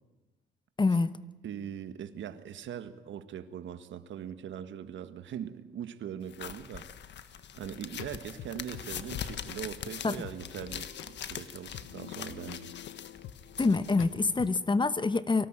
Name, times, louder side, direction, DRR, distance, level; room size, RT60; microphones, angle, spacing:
voice 1, 0.8-1.1 10.0-10.2 13.6-15.5, left 3 dB, 25° left, 1.1 m, -26 dB
voice 2, 1.4-6.9 7.2-12.7, right 9 dB, 70° right, 1.7 m, -41 dB
sound 1, 6.3-14.5, left 9 dB, 65° left, 1.5 m, -42 dB
sound 2, 7.6-14.7, left 11 dB, 85° left, 1.3 m, -48 dB
24.0 x 18.0 x 9.0 m
cardioid pair, 90°, 20 cm